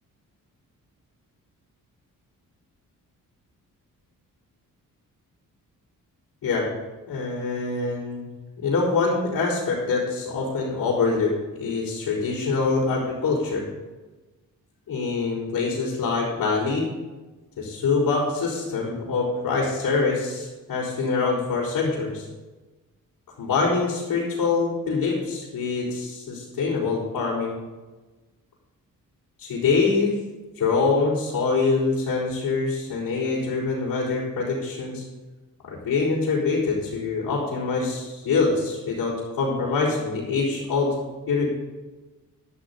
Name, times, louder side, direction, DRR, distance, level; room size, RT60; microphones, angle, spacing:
voice 1, 7.1-8.3 8.6-11.3 11.6-13.7 14.9-16.9 17.6-22.2 23.4-27.6 29.4-30.1 30.6-35.0 35.6-40.9 41.3-41.5, left 4 dB, 85° left, -10 dB, 4.5 m, -24 dB
13.0 x 12.0 x 4.0 m, 1.2 s
cardioid pair, 80°, 34 cm